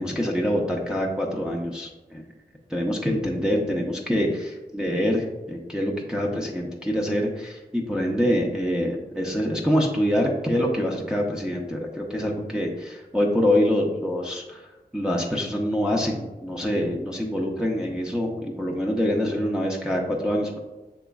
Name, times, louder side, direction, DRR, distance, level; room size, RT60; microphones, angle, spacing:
voice 1, 0.0-2.2 2.7-14.7 14.9-20.6, equal, 5° right, -2 dB, 0.6 m, -25 dB
6.8 x 3.0 x 2.3 m, 1.1 s
wide cardioid pair, 65°, 17 cm